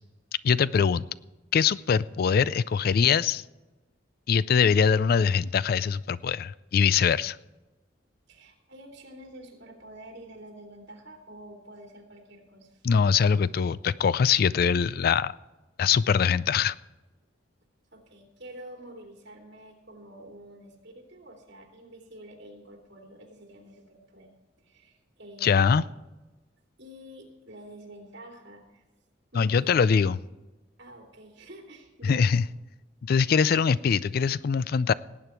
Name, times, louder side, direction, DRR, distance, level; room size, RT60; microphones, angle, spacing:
voice 1, 0.4-1.1 1.5-3.4 4.3-7.4 12.8-15.3 15.8-16.8 25.4-25.8 29.4-30.2 32.0-32.4 33.0-34.9, left 6 dB, 50° left, 19 dB, 0.3 m, -23 dB
voice 2, 8.3-12.9 17.9-24.3 24.6-25.8 26.8-28.8 29.3-29.8 30.8-32.3, right 1 dB, 60° right, 2 dB, 3.1 m, -48 dB
18.5 x 8.6 x 4.5 m, 1.1 s
head